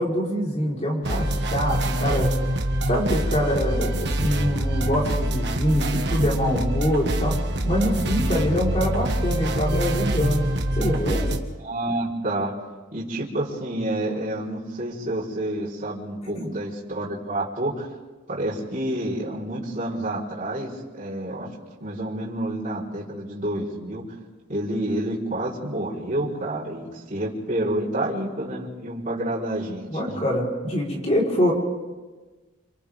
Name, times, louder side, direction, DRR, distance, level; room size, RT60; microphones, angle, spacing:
voice 1, 0.0-2.3 2.9-3.9 4.2-10.5 10.7-11.3 16.3-16.5 29.9-31.5, equal, 30° left, -3 dB, 4.5 m, -24 dB
sound 1, 1.0-11.4, right 1 dB, 55° right, 1.7 m, -25 dB
voice 2, 3.6-3.9 11.6-12.5 12.9-17.9 18.3-21.5 21.8-24.0 24.5-30.2, right 1 dB, 35° right, -9 dB, 4.5 m, -29 dB
29.0 x 27.5 x 3.7 m, 1.3 s
head